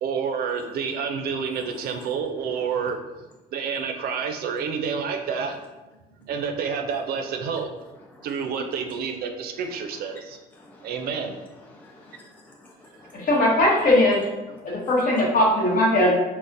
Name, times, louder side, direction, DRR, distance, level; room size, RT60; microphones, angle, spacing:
voice 1, 0.0-3.0 3.5-5.6 6.2-7.7 8.2-10.4 10.8-11.4 14.7-14.8, right 6 dB, 65° right, 6 dB, 0.4 m, -29 dB
voice 2, 1.7-2.1 8.1-8.3 10.1-10.2 10.5-11.1 11.7-13.3 14.7-14.9, left 2 dB, 10° left, -1 dB, 0.3 m, -50 dB
voice 3, 13.1-14.2 14.6-16.1, left 1 dB, 55° left, -2 dB, 0.9 m, -19 dB
3.9 x 2.1 x 2.5 m, 1.1 s
cardioid pair, 110°, 17 cm